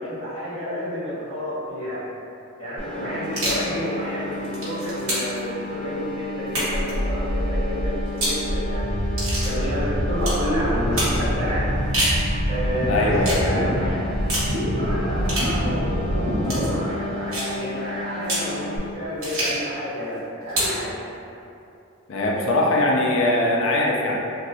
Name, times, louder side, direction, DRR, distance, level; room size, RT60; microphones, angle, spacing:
voice 1, 0.0-2.0 2.6-9.0 9.4-11.7 12.5-14.1 14.8-21.0, equal, 30° right, -15 dB, 1.4 m, -30 dB
sound 1, 2.8-18.8, left 3 dB, 30° left, 0.9 m, -34 dB
sound 2, 3.2-3.7 4.3-5.4 6.5-6.9 8.1-8.4 9.2-9.5 10.2-10.4 11.0-11.2 11.7-12.2 13.2-13.4 14.3-14.5 15.2-15.5 16.4-16.7 17.3-17.5 18.2-18.5 19.2-19.6 20.5-20.8, right 1 dB, 85° right, 1.3 m, -26 dB
sound 3, 6.7-16.7, equal, 70° right, 0.6 m, -26 dB
voice 2, 12.9-13.7 22.1-24.2, left 1 dB, 70° left, -2 dB, 0.4 m, -21 dB
3.0 x 2.6 x 2.6 m, 2.7 s
head